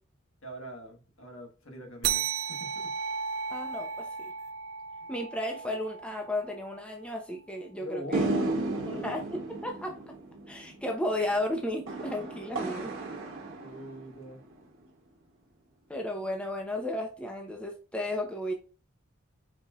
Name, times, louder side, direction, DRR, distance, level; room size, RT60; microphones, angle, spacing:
voice 1, 0.4-2.9 5.0-5.1 7.8-9.0 13.6-14.4, right 1 dB, 70° left, 1.4 m, -43 dB
sound 1, 2.0-7.0, right 7 dB, 50° right, 0.5 m, -35 dB
voice 2, 3.5-4.3 5.1-8.2 8.9-9.2 9.5-10.1 10.5-12.9 15.9-18.5, left 1 dB, 5° left, 0.6 m, -34 dB
sound 2, 8.1-14.6, right 2 dB, 65° right, 1.2 m, -34 dB
5.0 x 4.2 x 2.3 m
head